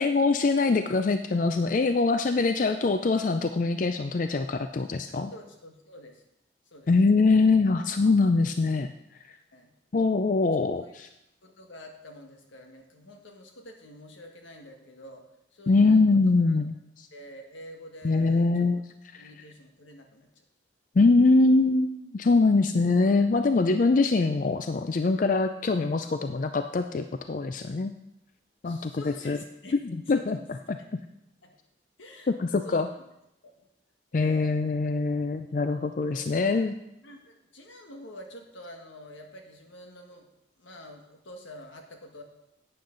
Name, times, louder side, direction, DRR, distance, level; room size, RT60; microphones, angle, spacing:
voice 1, 0.0-5.3 6.9-8.9 9.9-11.1 15.7-17.1 18.0-18.8 19.1-19.3 21.0-27.9 28.6-29.4 29.8-30.4 32.3-32.9 34.1-36.7, left 3 dB, 45° left, 8 dB, 0.4 m, -23 dB
voice 2, 5.3-6.2 6.7-6.9 9.5-9.7 10.4-10.6 10.8-10.9 11.4-15.2 15.5-16.0 16.5-16.6 17.1-18.7 19.2-20.3 22.3-22.7 28.6-29.8 30.1-30.4 30.8-30.9 31.4-31.5 32.0-32.4 32.6-32.9 33.4-33.5 34.1-34.7 36.1-36.6 37.0-40.2 40.6-42.2, left 1 dB, 85° left, 3 dB, 1.6 m, -47 dB
11.5 x 8.7 x 3.9 m, 0.85 s
head